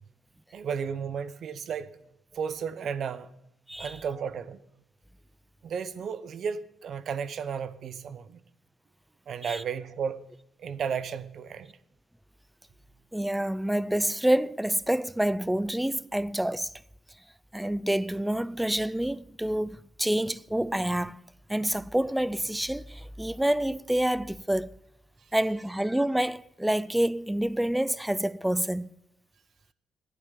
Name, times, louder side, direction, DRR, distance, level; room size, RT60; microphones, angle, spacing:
voice 1, 0.5-1.9 2.3-3.3 3.8-4.6 5.6-8.4 9.3-10.2 10.6-11.7, right 7 dB, 60° right, 0.8 m, -33 dB
voice 2, 13.1-16.7 17.5-21.2 21.5-24.7 25.3-28.9, right 1 dB, 5° right, 0.4 m, -27 dB
9.9 x 9.2 x 9.9 m
cardioid pair, 90°, 0 cm